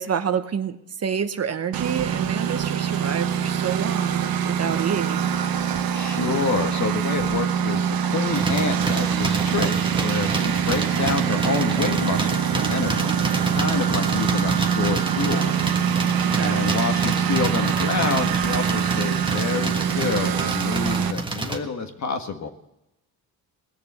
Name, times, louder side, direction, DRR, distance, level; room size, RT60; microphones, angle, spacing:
voice 1, 0.0-5.3 16.2-16.6, right 7 dB, 40° right, 10 dB, 0.9 m, -28 dB
Engine, 1.7-21.1, right 8 dB, 65° right, 1.1 m, -24 dB
voice 2, 5.9-13.2 13.5-15.5 16.4-22.5, left 5 dB, 45° left, 7 dB, 1.6 m, -28 dB
sound 1, 8.3-21.6, right 3 dB, 15° right, 1.5 m, -29 dB
20.0 x 6.8 x 8.3 m, 0.89 s
cardioid pair, 105°, 38 cm